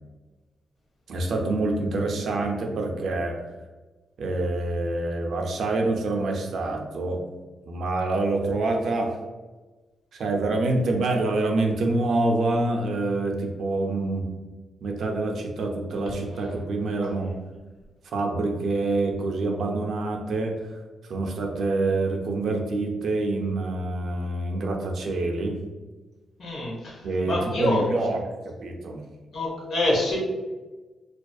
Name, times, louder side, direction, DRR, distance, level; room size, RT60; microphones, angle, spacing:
voice 1, 1.1-3.4 4.2-7.2 7.6-9.2 10.1-14.3 14.8-17.3 18.1-20.7 21.0-25.6 27.0-29.0, right 2 dB, 60° right, 2 dB, 0.4 m, -26 dB
voice 2, 26.4-27.8 29.3-30.2, left 1 dB, 60° left, -4 dB, 0.9 m, -26 dB
2.5 x 2.3 x 2.2 m, 1.2 s
wide cardioid pair, 180°, 0 cm